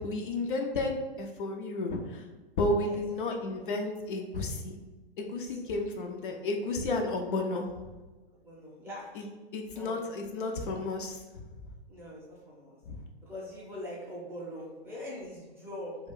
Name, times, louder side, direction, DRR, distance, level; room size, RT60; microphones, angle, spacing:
voice 1, 0.0-2.2 2.6-4.7 5.2-7.7 9.2-9.3 9.5-11.4 12.9-13.0, left 2 dB, 55° left, 2 dB, 0.5 m, -32 dB
voice 2, 2.8-3.7 5.2-5.7 8.3-9.1 9.7-10.1 11.9-12.8 13.2-16.0, left 1 dB, 10° right, -6 dB, 0.5 m, -43 dB
2.4 x 2.2 x 3.5 m, 1.2 s
figure-of-eight pair, 115°, 31 cm